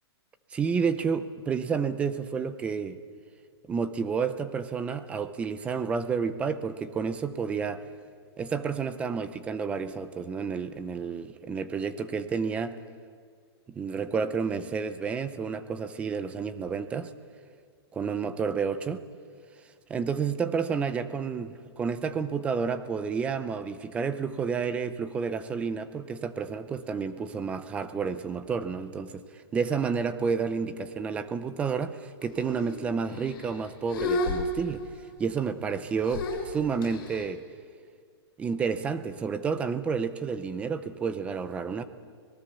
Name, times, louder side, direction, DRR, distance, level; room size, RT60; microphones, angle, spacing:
voice 1, 0.5-3.0 3.7-7.8 8.4-12.8 13.7-17.1 17.9-19.0 19.9-29.2 29.5-34.8 35.2-37.4 38.4-41.8, right 5 dB, 10° right, 12 dB, 0.6 m, -30 dB
sound 1, 32.2-32.8 33.1-33.6 33.9-35.1 36.1-37.3, left 2 dB, 50° left, 4.7 m, -32 dB
25.5 x 19.0 x 6.9 m, 2.1 s
hypercardioid pair, 170°, 14 cm